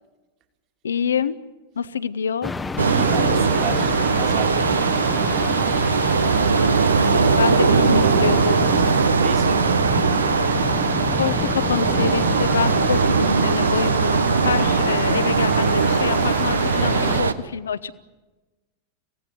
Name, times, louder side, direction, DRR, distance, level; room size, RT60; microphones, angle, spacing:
voice 1, 0.8-1.4 1.8-2.5 7.4-8.7 11.1-17.9, left 7 dB, 70° left, 16 dB, 1.0 m, -26 dB
sound 1, 2.4-17.2, left 3 dB, 10° left, 1.0 m, -29 dB
sound 2, 2.8-17.3, right 5 dB, 75° right, 1.1 m, -20 dB
voice 2, 2.9-6.3 9.2-9.9, right 9 dB, 40° right, 5 dB, 3.0 m, -34 dB
26.5 x 17.5 x 9.5 m, 1.2 s
figure-of-eight pair, 90°, 0 cm